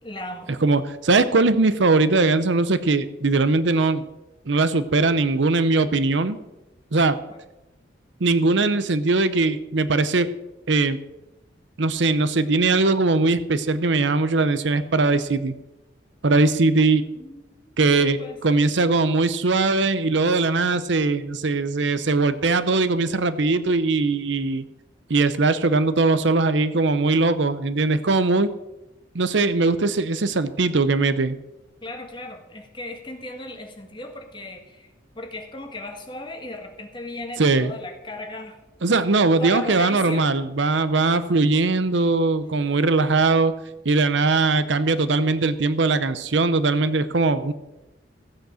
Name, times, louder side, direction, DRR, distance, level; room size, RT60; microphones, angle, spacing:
voice 1, 0.0-0.6 7.3-7.4 17.1-18.4 31.8-38.6 39.4-40.3 40.9-41.2, left 2 dB, 25° left, 3 dB, 1.6 m, -36 dB
voice 2, 0.6-4.0 4.5-6.4 6.9-7.2 8.2-10.3 10.7-11.0 11.8-15.5 16.2-17.0 17.8-24.6 25.1-28.5 29.1-31.4 37.4-37.7 38.8-43.5 43.8-47.5, right 3 dB, 70° right, 13 dB, 0.7 m, -20 dB
14.5 x 8.0 x 6.3 m, 0.99 s
head